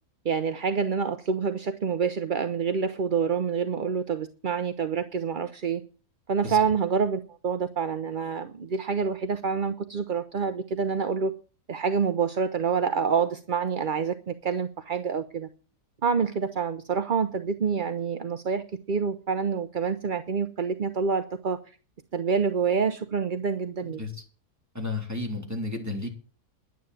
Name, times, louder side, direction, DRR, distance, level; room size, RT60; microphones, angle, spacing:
voice 1, 0.2-5.8 6.3-11.3 11.7-15.5 16.0-21.6 22.1-24.0, right 6 dB, 45° right, 9 dB, 0.7 m, -27 dB
voice 2, 24.7-26.1, left 2 dB, 10° right, 1 dB, 3.5 m, -32 dB
11.0 x 9.5 x 7.7 m, 0.37 s
omnidirectional pair, 1.7 m